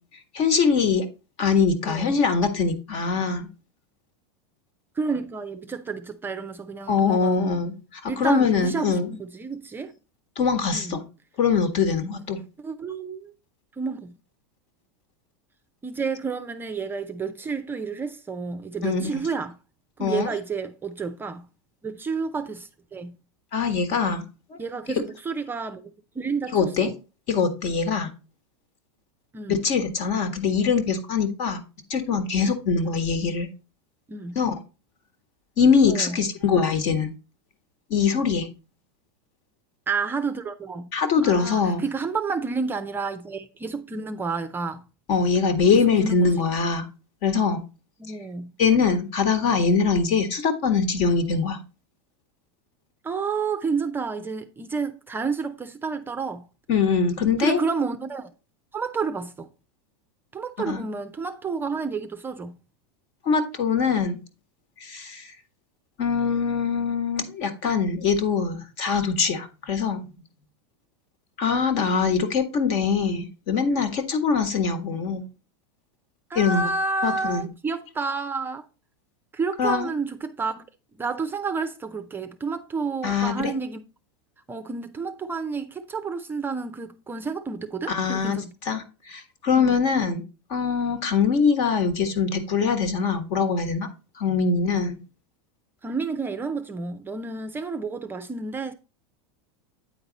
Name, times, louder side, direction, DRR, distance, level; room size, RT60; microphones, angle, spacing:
voice 1, 0.3-1.0 1.4-3.5 6.9-9.1 10.3-11.0 11.4-12.4 18.8-19.2 20.0-20.3 23.5-24.6 26.5-26.9 27.3-28.1 29.5-31.6 31.9-33.5 34.3-34.5 35.6-37.1 37.9-38.5 40.9-41.8 45.1-46.9 47.2-47.6 48.6-51.6 56.7-57.6 60.7-60.8 63.2-64.2 64.8-65.3 66.0-70.0 71.4-75.2 76.3-76.7 77.0-77.5 79.6-79.9 83.0-83.5 87.9-88.4 88.6-90.2 90.5-93.9 94.2-95.0, left 5 dB, 50° left, 1.5 m, -23 dB
voice 2, 1.8-2.2 4.9-7.7 8.1-9.9 10.7-11.0 12.6-13.3 13.8-14.1 15.8-19.6 20.0-21.5 21.8-23.2 24.6-25.8 26.1-26.9 29.3-29.6 32.7-33.0 34.1-34.4 35.9-36.2 39.9-40.9 41.2-44.9 45.7-46.3 48.0-48.5 53.0-56.5 57.4-58.3 58.7-59.5 60.3-62.6 76.3-78.6 79.3-80.6 81.0-83.8 84.5-88.5 89.5-89.8 95.8-98.7, right 4 dB, 15° right, 0.5 m, -30 dB
8.9 x 4.0 x 4.0 m
supercardioid pair, 125°, 14 cm